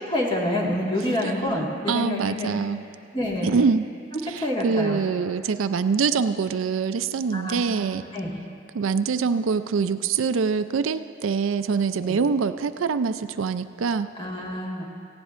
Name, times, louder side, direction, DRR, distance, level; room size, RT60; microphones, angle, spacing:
voice 1, 0.1-2.5 3.1-3.6 4.4-5.0 7.3-7.8 8.1-8.3 12.0-12.2 14.2-14.8, left 1 dB, 25° left, -3 dB, 1.8 m, -27 dB
voice 2, 1.9-2.8 3.4-3.9 4.3-8.0 8.7-14.1, right 5 dB, 80° right, 11 dB, 0.4 m, -24 dB
18.0 x 16.0 x 2.5 m, 2.5 s
head